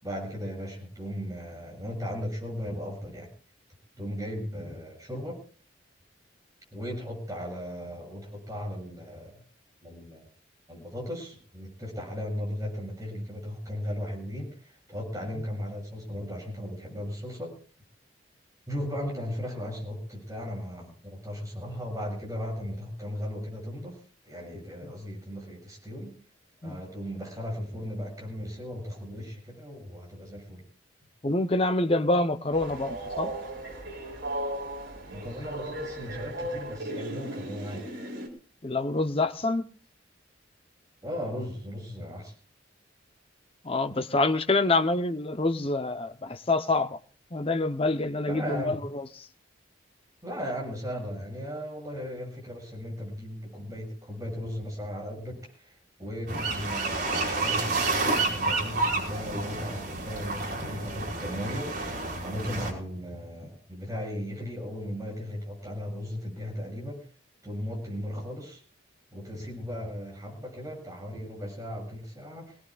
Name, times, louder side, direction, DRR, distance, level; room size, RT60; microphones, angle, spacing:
voice 1, 0.0-3.3 4.0-5.4 6.7-9.4 9.8-10.3 10.7-17.5 18.7-26.1 26.6-30.6 35.1-37.9 41.0-42.4 48.3-48.7 50.2-61.8 62.2-67.1 67.4-68.6 69.1-72.6, equal, 15° right, 7.3 m, -36 dB
voice 2, 31.2-33.3 38.6-39.7 43.6-47.0 47.3-49.3, left 2 dB, 30° left, 0.8 m, -26 dB
Train, 32.5-38.3, right 1 dB, 80° right, 4.3 m, -36 dB
sound 1, 56.3-62.7, right 3 dB, 55° right, 4.9 m, -30 dB
25.0 x 18.5 x 2.4 m
head